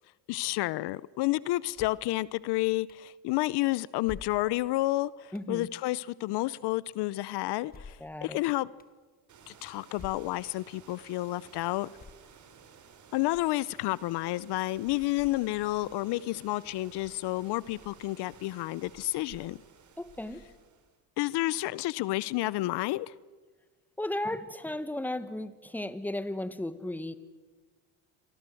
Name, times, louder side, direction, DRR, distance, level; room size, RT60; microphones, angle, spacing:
voice 1, 0.3-8.0 8.2-8.7 9.5-11.9 13.1-19.6 21.2-23.1, left 18 dB, 70° left, 0.7 m, -30 dB
sound 1, 1.7-2.1 2.9-3.0 4.0-4.7 5.3-5.5 7.7-8.1 8.8-8.9 9.9-10.4 10.9-11.0 12.0-12.5, left 5 dB, 20° left, 1.2 m, -48 dB
voice 2, 5.3-5.7 8.0-8.4 20.0-20.4 24.0-27.1, left 1 dB, 5° left, 1.5 m, -35 dB
sound 2, 9.3-21.0, right 6 dB, 45° right, 3.7 m, -55 dB
29.0 x 24.0 x 7.8 m
cardioid pair, 110°, 41 cm